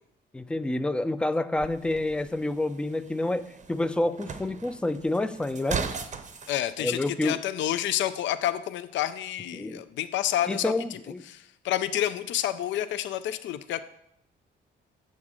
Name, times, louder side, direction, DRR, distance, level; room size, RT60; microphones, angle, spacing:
voice 1, 0.3-5.8 6.8-7.4 9.5-9.8 10.5-11.2, left 2 dB, 5° left, 12 dB, 0.3 m, -28 dB
sound 1, 1.6-6.6, right 5 dB, 40° right, 0.6 m, -38 dB
voice 2, 6.5-10.7 11.3-13.8, left 12 dB, 70° left, 13 dB, 0.4 m, -29 dB
7.3 x 6.3 x 3.7 m, 0.75 s
cardioid pair, 90°, 20 cm